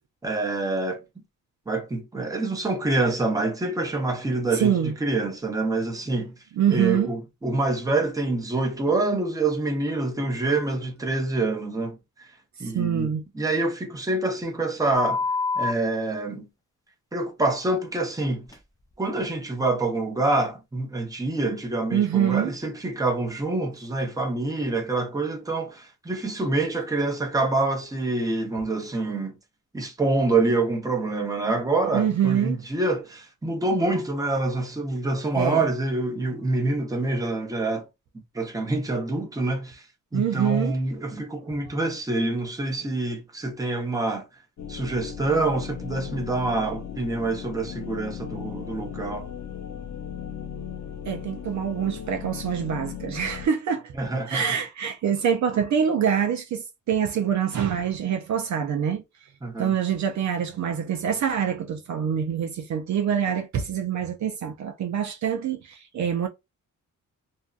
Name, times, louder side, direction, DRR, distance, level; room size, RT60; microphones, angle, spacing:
voice 1, 0.2-1.0 1.7-6.3 6.7-12.3 12.6-13.1 13.3-15.2 15.6-16.5 17.1-18.5 19.0-29.3 29.7-37.9 38.3-39.8 40.1-44.3 44.7-49.3 54.0-54.5 59.4-59.7, right 2 dB, 10° right, 0.8 m, -26 dB
voice 2, 4.5-4.9 6.6-7.1 12.6-13.2 21.9-22.5 31.9-32.6 35.3-35.6 40.1-40.8 51.1-53.9 54.3-59.0 59.6-66.3, right 8 dB, 60° right, 0.5 m, -25 dB
sound 1, 14.9-15.7 18.5-18.6, left 4 dB, 10° left, 0.4 m, -25 dB
sound 2, 44.6-53.5, left 8 dB, 55° left, 0.6 m, -37 dB
2.6 x 2.3 x 2.4 m
cardioid pair, 105°, 33 cm